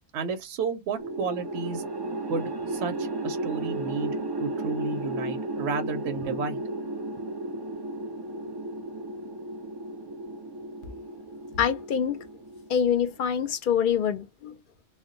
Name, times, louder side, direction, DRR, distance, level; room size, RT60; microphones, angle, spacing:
voice 1, 0.1-1.8 2.3-6.6, right 4 dB, 80° right, 0.8 m, -32 dB
sound 1, 1.0-13.3, right 2 dB, 40° right, 0.3 m, -34 dB
voice 2, 11.6-12.2 12.7-14.6, left 8 dB, 60° left, 0.6 m, -25 dB
2.2 x 2.1 x 3.7 m
omnidirectional pair, 1.1 m